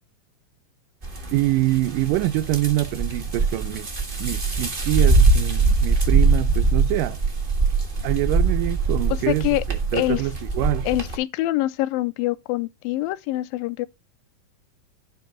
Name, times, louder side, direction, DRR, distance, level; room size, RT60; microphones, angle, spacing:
sound 1, 1.0-11.2, right 3 dB, 45° right, 0.6 m, -22 dB
voice 1, 1.3-3.9 4.2-7.2 8.0-10.9, right 16 dB, 80° right, 2.1 m, -25 dB
voice 2, 9.1-9.6 9.9-10.2 10.9-13.9, left 17 dB, 85° left, 2.3 m, -25 dB
10.5 x 3.6 x 6.2 m
omnidirectional pair, 4.0 m